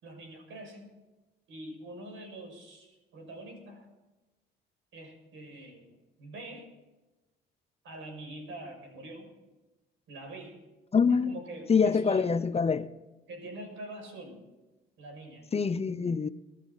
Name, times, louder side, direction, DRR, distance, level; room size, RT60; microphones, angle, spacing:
voice 1, 0.0-0.9 1.5-3.9 4.9-6.7 7.8-9.3 10.1-10.6 11.2-12.3 13.3-14.4 15.0-15.5, right 1 dB, 80° right, 6.5 m, -44 dB
voice 2, 10.9-11.3 11.7-12.9 15.5-16.3, left 5 dB, 30° left, 0.8 m, -25 dB
24.0 x 12.5 x 4.2 m
cardioid pair, 90°, 20 cm